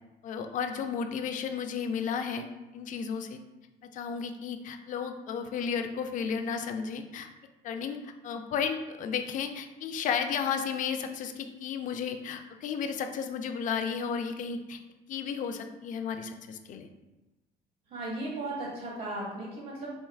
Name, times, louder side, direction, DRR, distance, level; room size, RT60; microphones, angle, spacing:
voice 1, 0.2-2.5 2.7-3.4 3.9-7.3 7.6-14.8 15.1-16.9, left 6 dB, 50° left, 6 dB, 0.4 m, -33 dB
voice 2, 17.9-19.9, right 2 dB, 65° right, -4 dB, 1.1 m, -36 dB
4.4 x 2.6 x 2.3 m, 1.1 s
cardioid pair, 110°, 17 cm